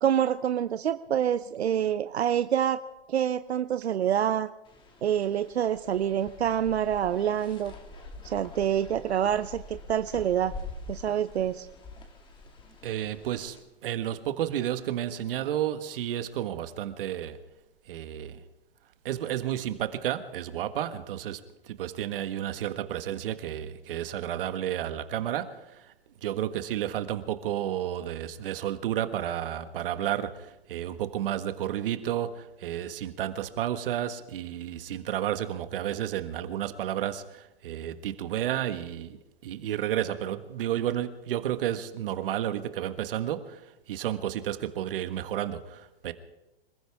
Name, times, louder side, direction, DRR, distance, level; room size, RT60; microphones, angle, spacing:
voice 1, 0.0-2.8 3.1-4.5 5.0-7.7 8.2-10.5 10.9-11.7, right 10 dB, 90° right, 0.8 m, -26 dB
sound 1, 4.6-13.6, left 2 dB, 15° left, 2.3 m, -45 dB
voice 2, 12.8-17.4 17.9-18.4 19.0-25.9 26.2-46.1, right 11 dB, 60° right, 1.6 m, -32 dB
27.0 x 15.0 x 3.6 m
hypercardioid pair, 135°, 31 cm